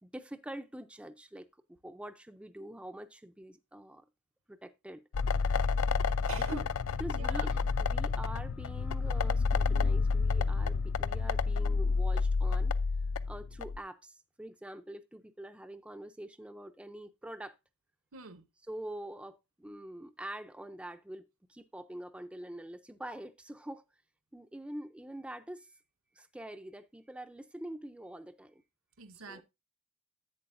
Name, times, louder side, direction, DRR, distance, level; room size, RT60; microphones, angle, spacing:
voice 1, 0.0-1.5 1.8-4.0 4.5-5.0 6.3-6.6 7.0-12.7 13.3-17.6 18.7-23.9 24.3-25.8 26.2-28.6 29.3-29.4, right 1 dB, 5° right, 0.4 m, -45 dB
sound 1, 5.1-13.8, left 4 dB, 75° left, 0.4 m, -30 dB
voice 2, 6.1-6.6 7.1-7.5 18.1-18.4 29.0-29.4, right 4 dB, 65° right, 0.8 m, -43 dB
11.0 x 8.3 x 2.5 m
head